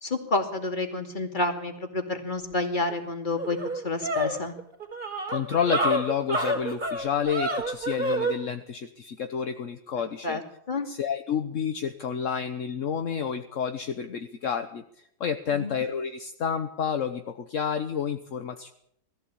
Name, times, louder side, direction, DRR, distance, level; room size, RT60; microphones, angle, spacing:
voice 1, 0.0-4.5 10.2-10.4 10.7-10.9 15.5-15.8, left 2 dB, 25° left, 5 dB, 2.6 m, -29 dB
sound 1, 2.9-3.0 3.4-8.4, right 1 dB, 25° right, 3.8 m, -28 dB
voice 2, 5.3-10.4 10.9-18.7, left 7 dB, 50° left, 8 dB, 1.1 m, -30 dB
20.5 x 14.5 x 8.8 m, 0.72 s
omnidirectional pair, 2.2 m